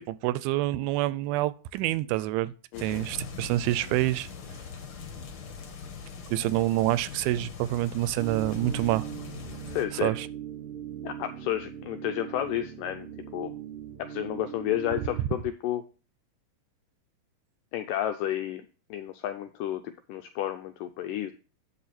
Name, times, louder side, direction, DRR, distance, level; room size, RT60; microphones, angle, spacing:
voice 1, 0.0-2.5 2.8-4.3 6.3-9.1 10.0-10.3, right 15 dB, 85° right, 2.4 m, -27 dB
voice 2, 2.7-3.1 9.7-10.1 11.0-13.1 13.3-13.5 14.0-15.8 17.7-18.6 18.9-21.3, left 12 dB, 85° left, 1.9 m, -31 dB
sound 1, 2.7-9.8, left 5 dB, 60° left, 1.5 m, -41 dB
sound 2, 8.1-15.2, right 10 dB, 45° right, 0.7 m, -40 dB
8.7 x 6.1 x 4.1 m
omnidirectional pair, 4.3 m